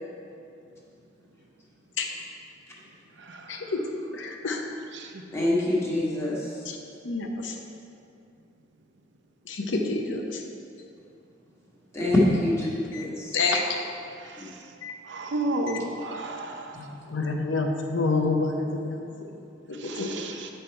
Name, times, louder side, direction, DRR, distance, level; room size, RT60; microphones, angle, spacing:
voice 1, 3.5-3.8 4.1-4.6 6.6-6.8 7.0-7.5 9.5-10.4 12.9-13.1 13.3-13.8 14.8-14.9 17.1-19.0 19.8-20.3, left 3 dB, 80° left, 2 dB, 0.9 m, -28 dB
voice 2, 5.3-6.4 11.9-13.3 14.4-14.5, left 1 dB, 15° left, -7 dB, 1.4 m, -24 dB
voice 3, 15.1-16.7 19.8-20.5, right 2 dB, 65° right, 4 dB, 0.7 m, -31 dB
8.2 x 5.6 x 4.5 m, 2.5 s
head